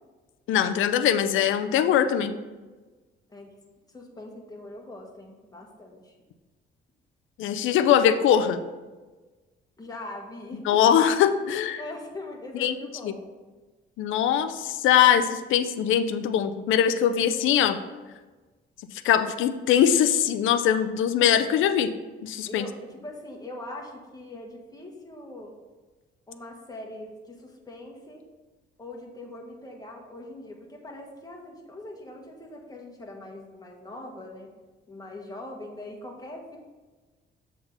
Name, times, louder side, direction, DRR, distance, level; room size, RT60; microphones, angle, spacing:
voice 1, 0.5-2.3 7.4-8.6 10.7-11.8 12.6-12.7 13.0-13.1 14.0-17.8 19.0-21.9 22.2-22.6, left 9 dB, 80° left, 10 dB, 0.5 m, -22 dB
voice 2, 3.9-6.2 9.8-10.8 11.8-13.3 22.5-25.5 26.3-28.2 28.8-34.5 34.9-36.6, left 1 dB, 20° left, 0 dB, 1.4 m, -41 dB
7.1 x 3.7 x 5.5 m, 1.3 s
cardioid pair, 90°, 20 cm